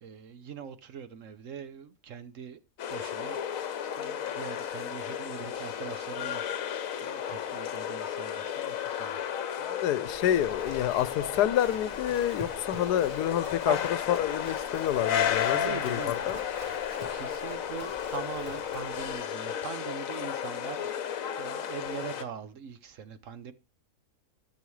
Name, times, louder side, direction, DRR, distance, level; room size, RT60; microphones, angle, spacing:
voice 1, 0.0-2.6 2.9-3.4 3.8-6.7 7.0-9.2 9.5-9.6 13.7-13.8 15.5-16.3 17.1-23.5, right 7 dB, 60° right, 1.0 m, -42 dB
sound 1, 2.8-22.2, left 9 dB, 60° left, 1.2 m, -33 dB
voice 2, 9.6-13.8 14.1-16.4, left 11 dB, 85° left, 1.2 m, -28 dB
Livestock farm animals working animals, 10.1-19.2, right 3 dB, 35° right, 0.7 m, -47 dB
13.0 x 7.0 x 3.2 m
omnidirectional pair, 1.7 m